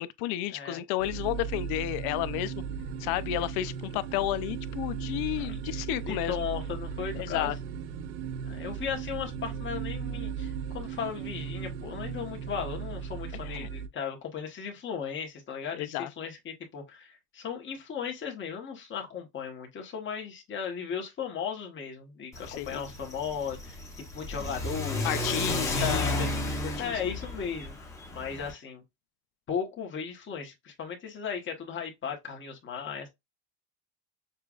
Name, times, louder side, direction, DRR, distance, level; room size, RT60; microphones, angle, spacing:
voice 1, 0.0-2.5 3.0-6.5 7.1-7.5 13.4-13.7 15.7-16.1 22.5-22.8 25.0-26.3 26.8-27.0, left 14 dB, 65° left, 0.6 m, -32 dB
sound 1, 1.0-13.9, right 7 dB, 90° right, 0.7 m, -37 dB
voice 2, 6.0-7.5 8.4-23.8 24.1-25.1 25.5-26.3 26.8-27.7 28.1-28.8 29.5-33.1, left 7 dB, 30° left, 1.2 m, -36 dB
Car / Accelerating revving vroom, 22.3-28.5, left 1 dB, 10° left, 0.9 m, -33 dB
6.6 x 2.4 x 2.4 m
cardioid pair, 160°, 41 cm